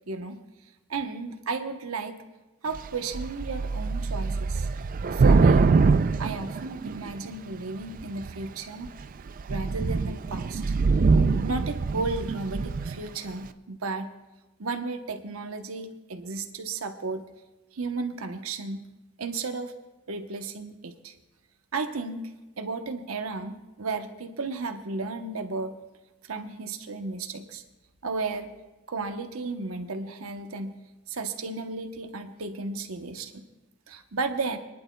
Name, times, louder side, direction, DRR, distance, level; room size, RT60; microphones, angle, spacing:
voice 1, 0.1-0.4 0.9-2.2 2.6-4.7 5.1-5.7 6.2-8.9 9.5-10.6 11.4-14.1 14.6-17.2 17.7-18.8 19.2-19.7 20.1-21.1 21.7-22.2 22.6-25.7 26.3-27.6 28.0-28.5 28.9-30.7 31.1-33.4 33.9-34.6, right 3 dB, 85° right, 6 dB, 0.9 m, -34 dB
Thunder / Rain, 2.7-2.9 3.1-7.3 8.0-8.4 8.9-9.0 9.3-13.0, right 4 dB, 40° right, 0.3 m, -23 dB
28.5 x 10.5 x 2.3 m, 1.1 s
head